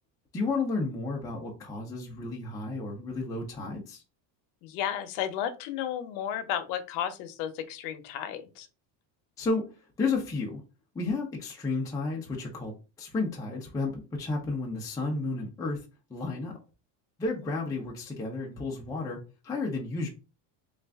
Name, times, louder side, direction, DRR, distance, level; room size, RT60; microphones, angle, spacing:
voice 1, 0.3-4.0 9.4-9.7 10.0-10.6 10.9-15.8 16.1-16.5 17.2-19.2 19.4-20.1, left 3 dB, 5° left, -1 dB, 0.4 m, -32 dB
voice 2, 4.6-8.7 17.4-17.5, left 10 dB, 75° left, 10 dB, 0.8 m, -33 dB
3.3 x 2.5 x 3.4 m, 0.31 s
cardioid pair, 150°, 50 cm